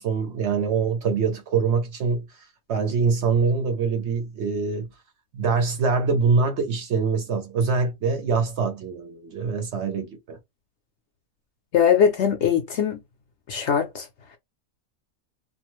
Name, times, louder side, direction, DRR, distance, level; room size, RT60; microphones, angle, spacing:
voice 1, 0.0-2.4 2.7-4.9 5.3-10.4, right 5 dB, 60° right, 0.8 m, -24 dB
voice 2, 11.7-13.0 13.5-14.1, left 8 dB, 65° left, 0.7 m, -21 dB
2.5 x 2.3 x 3.0 m
omnidirectional pair, 1.5 m